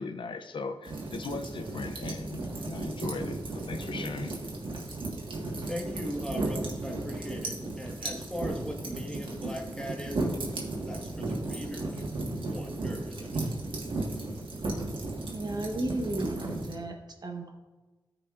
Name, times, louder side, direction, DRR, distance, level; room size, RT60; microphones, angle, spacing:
voice 1, 0.0-4.3, left 3 dB, 75° left, 0.5 m, -38 dB
sound 1, 0.9-16.7, right 2 dB, 80° right, 1.6 m, -35 dB
voice 2, 5.7-10.2 10.8-12.2 12.5-13.5, equal, 10° left, 1.5 m, -39 dB
voice 3, 15.3-16.9 17.2-17.5, right 2 dB, 55° right, 1.1 m, -33 dB
13.5 x 5.0 x 2.5 m
wide cardioid pair, 85°, 9 cm